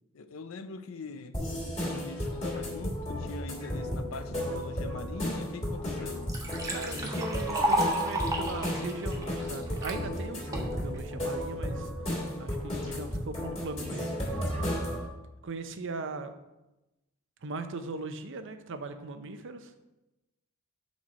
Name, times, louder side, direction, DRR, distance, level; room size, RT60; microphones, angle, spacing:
voice 1, 0.1-1.4 1.8-6.3, left 4 dB, 75° left, 10 dB, 0.6 m, -42 dB
sound 1, 1.3-15.1, equal, 30° left, 2.4 m, -34 dB
Liquid, 5.5-5.6 6.0-10.0 10.5-11.0, right 1 dB, 15° right, 1.2 m, -32 dB
voice 2, 6.7-11.9 12.4-15.0 15.4-16.3 17.4-19.8, right 3 dB, 65° right, 8 dB, 0.7 m, -39 dB
6.5 x 6.3 x 4.2 m, 0.98 s
head